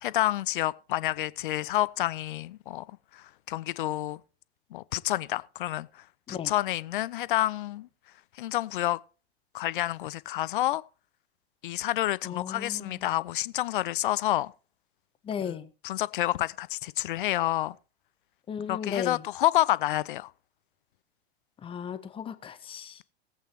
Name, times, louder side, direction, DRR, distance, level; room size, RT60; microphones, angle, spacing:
voice 1, 0.0-4.2 4.7-7.9 8.3-9.0 9.5-10.8 11.6-14.5 15.5-15.6 15.8-17.8 18.7-20.3, left 14 dB, 50° left, 0.5 m, -29 dB
voice 2, 12.2-13.1 15.2-15.7 18.5-19.2 21.6-23.0, left 8 dB, 15° left, 0.9 m, -35 dB
19.5 x 8.2 x 2.9 m
figure-of-eight pair, 95°, 32 cm